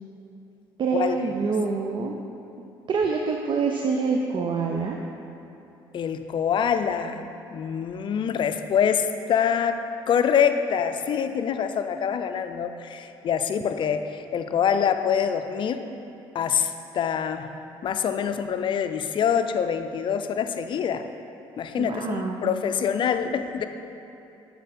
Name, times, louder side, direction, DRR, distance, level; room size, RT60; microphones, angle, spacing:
voice 1, 0.8-2.2 2.9-5.0 21.8-22.5, right 4 dB, 50° right, 1 dB, 0.5 m, -26 dB
voice 2, 5.9-9.8 10.1-15.8 16.3-17.5 17.8-21.0 21.6-23.7, left 7 dB, 50° left, 9 dB, 0.4 m, -25 dB
8.3 x 4.5 x 4.1 m, 2.9 s
supercardioid pair, 70°, 10 cm